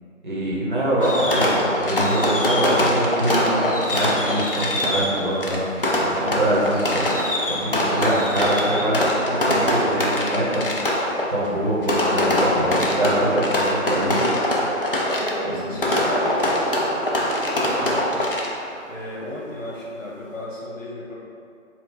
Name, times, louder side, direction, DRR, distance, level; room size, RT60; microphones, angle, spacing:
voice 1, 0.2-5.6 6.1-7.2 7.4-10.8 11.3-14.3 15.5-15.6, right 1 dB, 35° right, -8 dB, 1.0 m, -24 dB
Fireworks, 1.0-18.8, left 1 dB, 45° left, 0.4 m, -23 dB
voice 2, 14.4-18.3 18.9-21.1, left 1 dB, 70° left, -4 dB, 1.1 m, -35 dB
3.7 x 2.3 x 3.8 m, 2.4 s
figure-of-eight pair, 150°, 40 cm